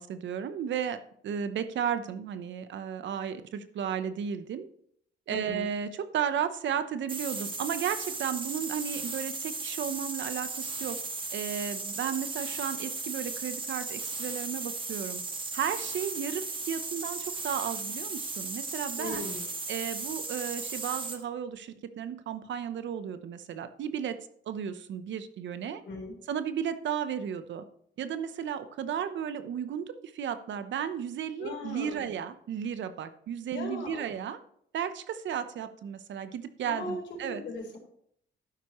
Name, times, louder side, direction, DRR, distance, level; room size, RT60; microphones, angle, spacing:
voice 1, 0.0-4.7 5.3-11.0 11.3-15.2 15.5-19.2 19.7-24.2 24.5-25.8 26.3-27.6 28.0-34.4 34.7-37.4, right 8 dB, 70° right, 11 dB, 0.9 m, -34 dB
voice 2, 5.3-5.7 19.0-19.5 25.8-26.2 31.4-32.1 33.5-34.1 36.6-37.8, left 2 dB, 70° left, 1 dB, 3.9 m, -38 dB
sound 1, 7.1-21.2, right 3 dB, 25° right, 1.5 m, -36 dB
12.0 x 9.3 x 3.1 m, 0.67 s
cardioid pair, 90°, 20 cm